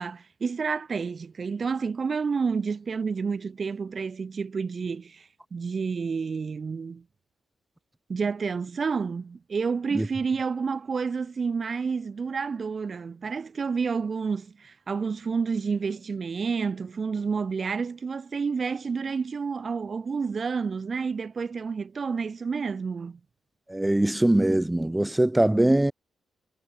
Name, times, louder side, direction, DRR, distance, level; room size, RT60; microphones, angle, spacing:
voice 1, 0.0-7.0 8.1-23.2, right 5 dB, 30° right, 1.0 m, -29 dB
voice 2, 23.7-25.9, right 1 dB, 5° right, 1.0 m, -22 dB
wide cardioid pair, 175°, 0 cm